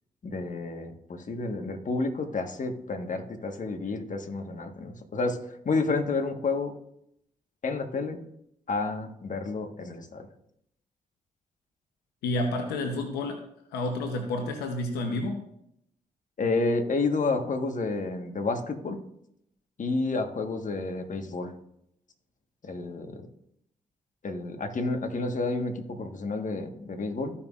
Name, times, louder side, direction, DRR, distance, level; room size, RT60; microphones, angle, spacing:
voice 1, 0.2-5.4 5.6-6.7 7.6-8.2 8.7-10.3 16.4-19.0 19.8-21.5 22.6-23.3 24.2-27.3, left 3 dB, 50° left, 5 dB, 1.4 m, -30 dB
voice 2, 12.2-13.4 13.7-15.4, left 2 dB, 90° left, 4 dB, 0.8 m, -30 dB
14.5 x 5.6 x 2.5 m, 0.75 s
supercardioid pair, 40°, 16 cm